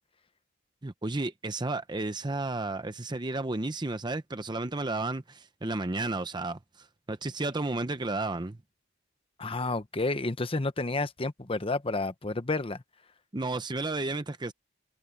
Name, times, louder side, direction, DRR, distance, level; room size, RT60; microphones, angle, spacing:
voice 1, 0.8-8.6 13.3-14.5, right 2 dB, 20° right, 0.7 m, -32 dB
voice 2, 9.4-12.8, left 2 dB, 30° left, 0.9 m, -30 dB
head